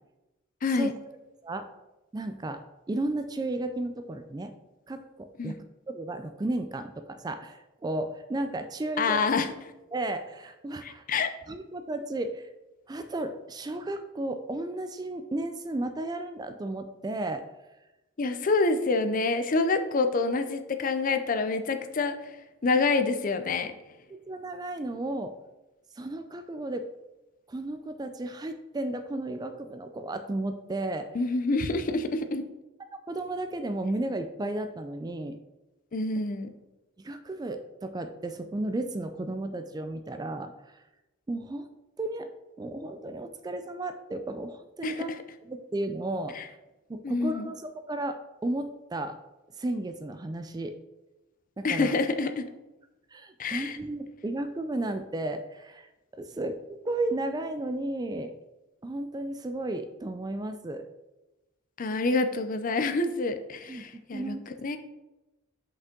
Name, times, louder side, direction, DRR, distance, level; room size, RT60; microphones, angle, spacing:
voice 1, 0.6-0.9 5.4-5.6 9.0-9.5 10.8-11.3 18.2-22.2 22.6-23.7 31.1-32.4 35.9-36.5 44.8-45.0 46.3-46.5 47.0-47.5 51.6-52.4 53.4-53.8 61.8-64.4 64.6-64.8, left 3 dB, 40° left, 9 dB, 0.5 m, -27 dB
voice 2, 2.1-2.6 2.9-4.5 4.9-5.6 5.9-9.2 9.9-11.0 11.5-12.5 12.9-17.4 24.1-25.3 26.0-26.9 27.5-31.1 32.8-35.4 37.0-40.8 41.3-41.7 42.0-42.3 42.6-45.1 45.4-46.4 46.9-49.2 49.6-50.7 51.6-51.9 53.1-56.6 56.8-58.3 58.8-60.9 63.7-64.4, right 2 dB, 20° right, 8 dB, 0.3 m, -33 dB
5.9 x 5.3 x 3.8 m, 1.0 s
head